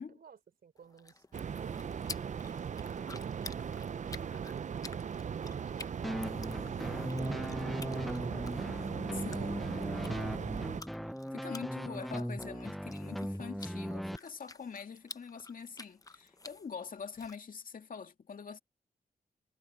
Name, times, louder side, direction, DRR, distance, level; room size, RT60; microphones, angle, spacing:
voice 1, 0.2-2.6 3.2-5.8 6.2-8.6 8.8-10.8, right 7 dB, 80° right, 3.5 m, -55 dB
sound 1, 0.8-17.4, left 3 dB, 20° left, 0.8 m, -52 dB
sound 2, 1.3-10.8, right 7 dB, 50° right, 0.5 m, -38 dB
sound 3, 6.0-14.2, equal, ahead, 0.5 m, -38 dB
voice 2, 9.2-10.1 11.3-18.6, left 6 dB, 65° left, 2.4 m, -44 dB
wide cardioid pair, 90°, 16 cm